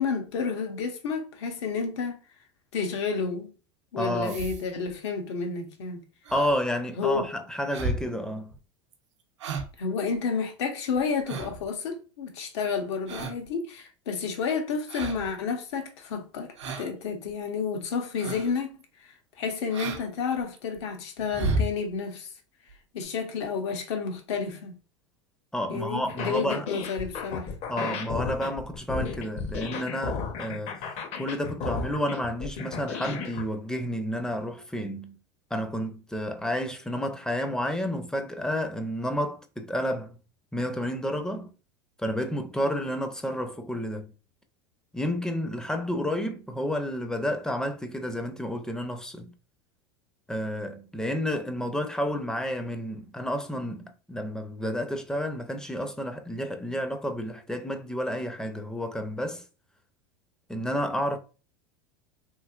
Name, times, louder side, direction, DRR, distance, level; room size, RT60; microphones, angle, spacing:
voice 1, 0.0-2.2 2.7-3.5 3.9-6.0 7.0-7.3 9.8-18.7 19.4-22.3 22.9-24.7 25.7-27.5, left 5 dB, 75° left, 0.9 m, -30 dB
voice 2, 4.0-4.5 6.3-8.5 25.5-26.7 27.7-30.8 31.2-35.2 35.5-40.2 40.5-41.5 42.0-44.1 44.9-49.3 50.3-59.4 60.5-61.2, equal, 5° left, 0.5 m, -30 dB
sound 1, 4.2-4.9 6.2-6.5 7.0-7.2 7.7-8.1 8.5-8.6 8.9-9.0 9.4-9.8 10.1-10.2 11.0-11.7 13.1-13.5 14.9-15.3 16.6-16.9 17.3-17.4 18.2-18.5 18.8-18.9 19.7-20.0 20.4-20.8 21.2-21.7 22.7-22.8 23.0-23.1, right 2 dB, 90° right, 0.6 m, -32 dB
sound 2, 26.1-33.4, left 5 dB, 45° left, 0.7 m, -34 dB
3.1 x 2.7 x 2.4 m
hypercardioid pair, 100°, 15 cm